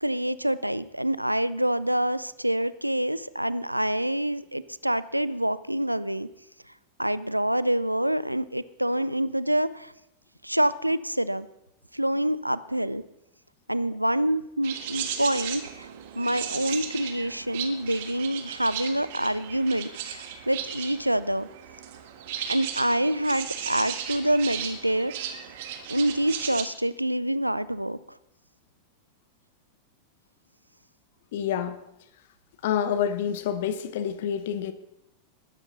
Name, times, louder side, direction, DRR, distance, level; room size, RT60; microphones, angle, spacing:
voice 1, 0.0-6.3 7.0-9.9 10.4-11.5 11.9-13.0 13.7-21.5 22.5-25.4 25.9-28.2, right 1 dB, 90° right, 0.5 m, -26 dB
sound 1, 14.6-26.6, right 9 dB, 55° right, 1.6 m, -36 dB
voice 2, 31.3-31.8 32.6-34.7, left 8 dB, 55° left, 1.0 m, -28 dB
20.0 x 9.8 x 4.0 m
figure-of-eight pair, 90°, 0 cm